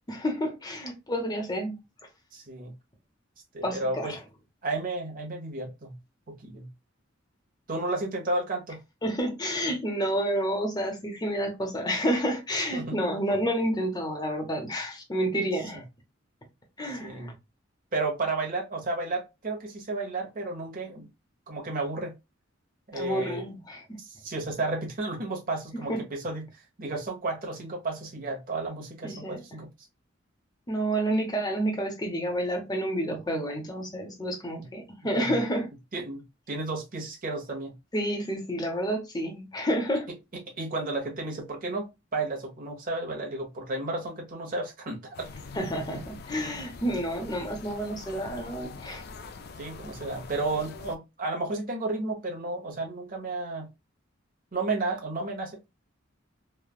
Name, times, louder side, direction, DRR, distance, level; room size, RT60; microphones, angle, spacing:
voice 1, 0.1-1.8 3.6-4.2 9.0-15.8 16.8-17.3 22.9-23.8 25.9-26.0 29.0-29.4 30.7-35.7 37.9-40.1 45.5-49.0, equal, 20° left, 0.8 m, -29 dB
voice 2, 2.3-2.7 3.5-4.1 4.6-5.9 6.4-6.7 7.7-8.8 12.7-13.0 15.7-15.8 16.8-17.4 17.9-21.1 21.5-22.1 22.9-23.4 24.0-26.5 26.8-29.7 34.6-34.7 35.0-35.4 35.9-37.8 40.6-41.9 42.1-45.3 49.6-53.7 54.5-55.7, right 2 dB, 45° right, 1.0 m, -32 dB
sound 1, 45.1-51.0, left 4 dB, 55° left, 0.4 m, -44 dB
3.2 x 2.3 x 2.3 m
head